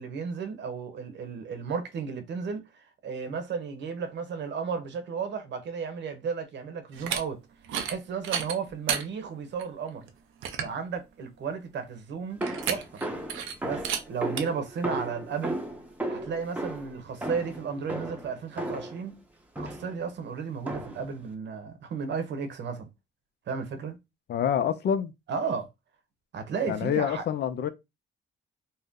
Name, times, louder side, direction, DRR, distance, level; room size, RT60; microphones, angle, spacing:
voice 1, 0.0-7.4 7.8-10.0 10.6-13.0 13.6-15.6 16.1-19.2 19.6-22.9 23.5-24.0 25.3-25.7 26.3-27.2, right 6 dB, 65° right, 0.9 m, -34 dB
sound 1, 6.9-7.2 7.6-8.0 8.2-9.0 9.6-9.7 10.1-10.2 10.4-10.8 12.4-13.0 13.3-13.5 13.8-14.0 14.4-14.5, right 8 dB, 90° right, 0.5 m, -31 dB
sound 2, 12.4-19.1 19.6-20.0 20.7-21.1, right 1 dB, 5° right, 0.7 m, -35 dB
voice 2, 24.3-25.1 26.7-27.7, left 8 dB, 55° left, 0.5 m, -27 dB
2.7 x 2.0 x 3.6 m
cardioid pair, 90°, 20 cm